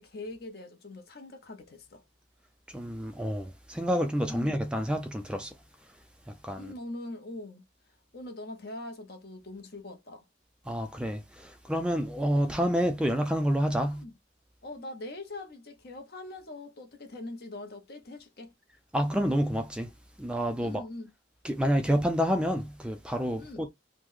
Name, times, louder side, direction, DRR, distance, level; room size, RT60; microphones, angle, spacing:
voice 1, 0.0-2.0 4.3-4.6 6.6-7.6 8.1-10.2 13.9-14.1 14.6-18.5 20.6-21.1 23.4-23.6, left 2 dB, 55° left, 0.8 m, -42 dB
voice 2, 2.7-5.6 6.3-6.7 10.7-14.0 18.9-19.9 20.2-20.9 21.4-23.7, equal, 5° right, 0.3 m, -28 dB
3.0 x 2.1 x 3.6 m
head